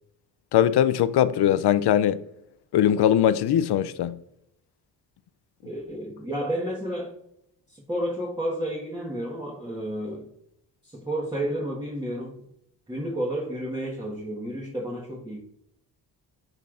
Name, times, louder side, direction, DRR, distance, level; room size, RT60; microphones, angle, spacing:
voice 1, 0.5-2.2 2.7-4.2, left 10 dB, 70° left, 0.6 m, -21 dB
voice 2, 5.6-7.1 7.7-10.3 10.8-12.5 12.9-15.4, right 1 dB, 10° right, 1.6 m, -31 dB
12.0 x 4.5 x 2.6 m
cardioid pair, 60°, 42 cm